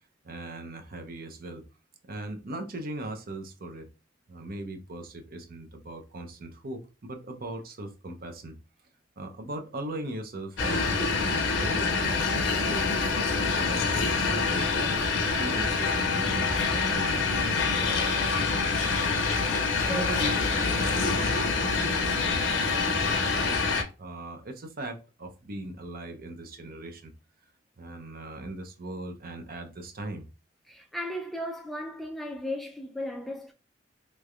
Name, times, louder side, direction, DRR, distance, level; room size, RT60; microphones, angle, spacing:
voice 1, 0.2-1.6 2.1-3.9 4.3-8.5 9.2-12.8 13.5-19.2 19.9-23.6 24.0-27.1 27.8-30.3, right 2 dB, 50° right, 0.7 m, -39 dB
sound 1, 10.6-23.8, left 4 dB, 70° left, 0.7 m, -26 dB
voice 2, 19.9-20.3 30.7-33.5, left 1 dB, ahead, 0.4 m, -36 dB
3.2 x 3.2 x 2.3 m
head